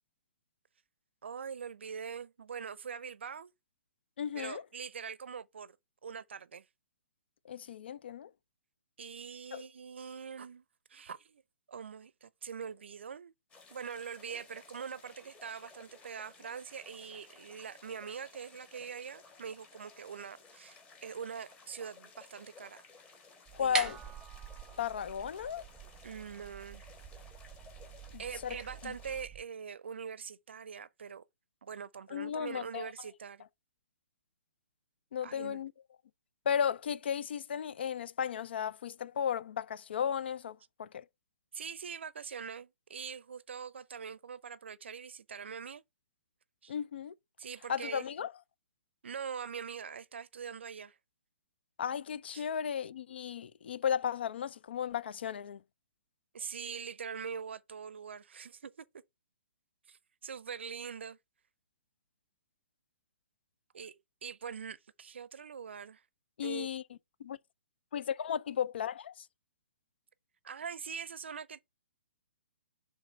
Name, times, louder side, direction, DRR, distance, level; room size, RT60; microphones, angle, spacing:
voice 1, 1.2-3.5 4.3-5.8 6.0-6.7 9.0-10.6 10.9-11.4 11.7-13.3 13.7-22.8 23.6-23.9 26.0-26.9 28.2-31.2 31.6-33.4 35.2-35.6 41.5-45.8 46.6-46.7 47.4-48.1 49.0-51.0 52.3-52.5 56.3-58.9 59.9-61.2 63.7-66.0 66.4-66.7 70.4-71.6, right 6 dB, 65° right, 0.6 m, -43 dB
voice 2, 4.2-4.6 7.4-8.3 9.5-9.6 23.5-24.0 24.8-25.7 28.1-28.6 28.8-28.9 32.1-32.9 35.1-35.7 36.5-41.0 46.7-47.1 47.7-48.3 51.8-55.6 66.4-66.8 67.2-67.4 67.9-69.3, left 8 dB, 55° left, 0.5 m, -35 dB
sound 1, 13.5-29.2, left 4 dB, 15° left, 1.4 m, -57 dB
sound 2, 23.5-29.4, right 6 dB, 10° right, 0.9 m, -43 dB
5.5 x 3.5 x 5.2 m
figure-of-eight pair, 125°, 7 cm